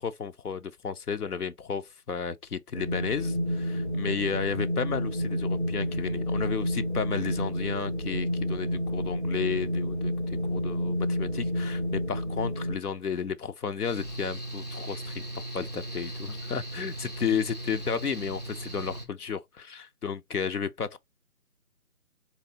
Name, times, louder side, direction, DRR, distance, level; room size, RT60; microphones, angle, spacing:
voice 1, 0.0-21.0, left 6 dB, 85° left, 0.8 m, -33 dB
Wind, 2.7-12.7, equal, 35° right, 0.4 m, -30 dB
Mechanical fan, 13.8-19.1, right 1 dB, 30° left, 0.6 m, -38 dB
4.0 x 3.3 x 2.7 m
figure-of-eight pair, 155°, 45 cm